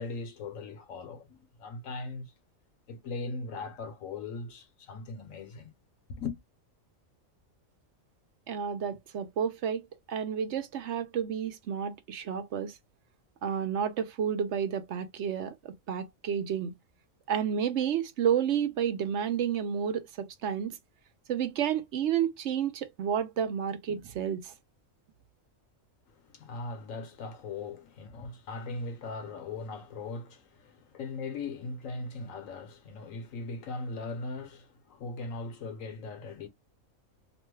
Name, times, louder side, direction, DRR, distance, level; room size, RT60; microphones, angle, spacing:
voice 1, 0.0-2.3 2.9-5.7 6.1-6.4 26.1-36.5, left 3 dB, 80° left, 1.2 m, -39 dB
voice 2, 8.5-12.8 13.4-16.7 17.3-20.8 21.3-24.5, right 8 dB, 65° right, 0.8 m, -31 dB
3.0 x 2.2 x 3.1 m
omnidirectional pair, 1.4 m